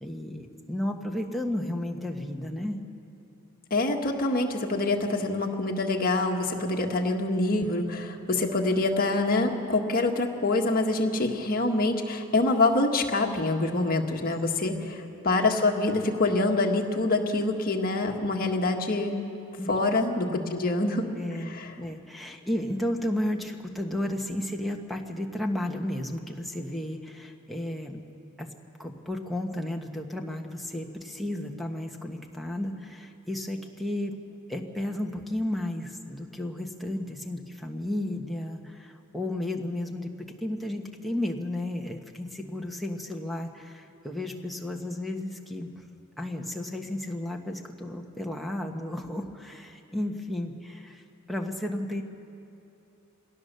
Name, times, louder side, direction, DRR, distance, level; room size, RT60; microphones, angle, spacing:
voice 1, 0.0-2.8 14.6-14.9 19.6-19.8 20.1-20.6 21.2-28.0 28.4-28.5 28.8-34.1 34.5-40.1 40.4-45.8 46.2-51.0 51.3-52.0, left 1 dB, ahead, 1 dB, 1.3 m, -33 dB
voice 2, 3.7-14.7 15.2-19.2 19.7-21.1 21.6-21.7, left 2 dB, 40° left, 1 dB, 1.6 m, -25 dB
23.5 x 17.5 x 6.8 m, 2.7 s
head